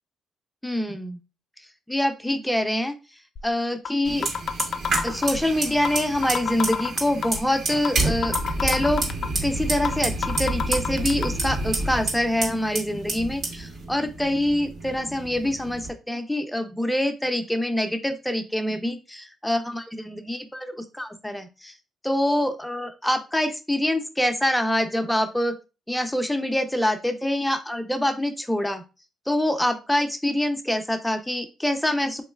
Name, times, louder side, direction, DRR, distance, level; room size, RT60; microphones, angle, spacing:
voice 1, 0.6-1.2 1.9-3.0 3.4-4.3 5.0-9.0 9.4-21.7 22.0-25.5 25.9-28.8 29.3-32.2, left 1 dB, 5° left, 6 dB, 0.6 m, -25 dB
sound 1, 3.4-3.5 3.9-4.0 4.2-5.4 5.9-6.0 6.2-7.4 7.9-8.0 8.2-9.4 9.9-10.0 10.2-11.3, left 7 dB, 65° left, 0.4 m, -27 dB
Fire, 4.0-15.9, right 2 dB, 70° right, 1.8 m, -29 dB
3.5 x 3.1 x 2.3 m, 0.30 s
cardioid pair, 90°, 0 cm